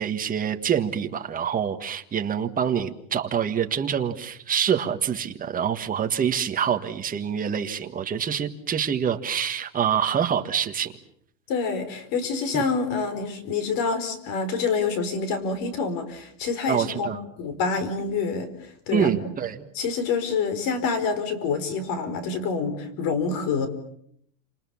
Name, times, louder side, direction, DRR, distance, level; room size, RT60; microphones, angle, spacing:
voice 1, 0.0-10.9 12.5-12.6 16.7-17.2 18.9-19.6, right 8 dB, 15° right, 6 dB, 1.6 m, -26 dB
voice 2, 11.5-19.1 19.7-23.7, left 5 dB, 40° left, 12 dB, 4.9 m, -27 dB
29.5 x 27.5 x 7.2 m, 0.68 s
supercardioid pair, 160°, 49 cm